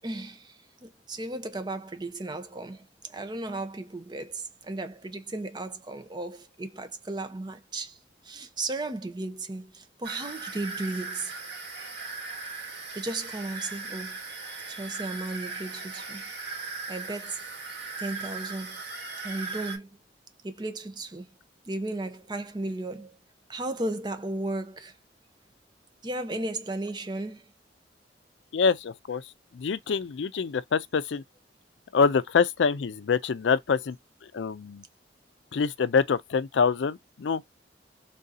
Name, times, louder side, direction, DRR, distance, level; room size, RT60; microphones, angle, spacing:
voice 1, 0.0-8.0 8.2-11.4 12.9-14.2 14.7-16.2 16.9-17.4 18.0-18.8 19.2-19.9 20.4-21.3 21.7-23.2 23.5-25.0 26.0-27.5, right 2 dB, 25° right, 0.7 m, -35 dB
sound 1, 10.0-19.8, right 4 dB, 85° right, 2.4 m, -38 dB
voice 2, 28.5-29.2 29.5-31.2 31.9-34.0 34.3-34.8 35.5-37.4, left 5 dB, 85° left, 0.4 m, -25 dB
3.7 x 2.7 x 3.9 m
head